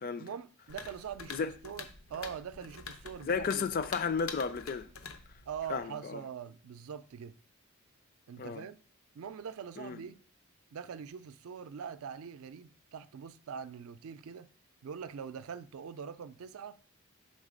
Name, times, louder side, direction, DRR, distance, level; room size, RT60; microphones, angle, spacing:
voice 1, 0.2-3.6 5.5-7.4 8.3-8.8 9.1-10.2 10.7-14.5 14.8-16.8, right 7 dB, 80° right, 0.4 m, -43 dB
sound 1, 0.7-5.9, left 5 dB, 85° left, 0.8 m, -46 dB
voice 2, 3.2-4.9 5.7-6.2 8.4-8.6 9.8-10.0, left 5 dB, 45° left, 0.4 m, -33 dB
6.5 x 4.0 x 5.1 m
head